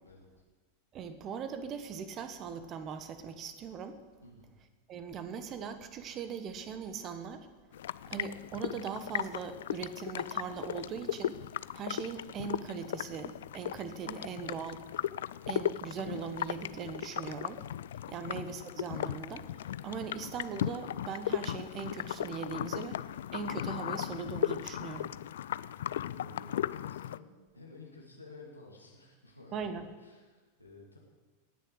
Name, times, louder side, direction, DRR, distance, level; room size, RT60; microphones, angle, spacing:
voice 1, 0.9-4.0 4.9-7.5 8.1-11.4 11.7-14.8 15.5-17.6 18.1-23.0 23.3-25.1 29.5-29.9, right 6 dB, 30° right, 10 dB, 1.3 m, -40 dB
sound 1, 7.7-27.2, left 11 dB, 60° left, 0.3 m, -37 dB
voice 2, 26.0-31.0, left 2 dB, 85° left, -1 dB, 2.5 m, -53 dB
18.0 x 6.8 x 7.9 m, 1.3 s
figure-of-eight pair, 90°, 0 cm